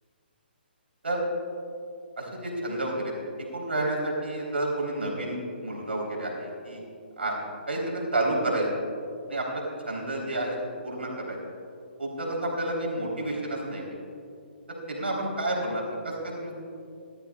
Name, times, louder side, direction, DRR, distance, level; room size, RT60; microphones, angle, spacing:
voice 1, 2.2-3.1 3.5-5.4 5.6-6.8 7.2-7.4 7.7-8.7 9.3-9.5 9.9-10.6 10.8-11.4 12.0-13.8 14.7-16.5, right 1 dB, 80° right, -2 dB, 3.5 m, -30 dB
20.5 x 12.5 x 2.4 m, 2.5 s
figure-of-eight pair, 135°, 6 cm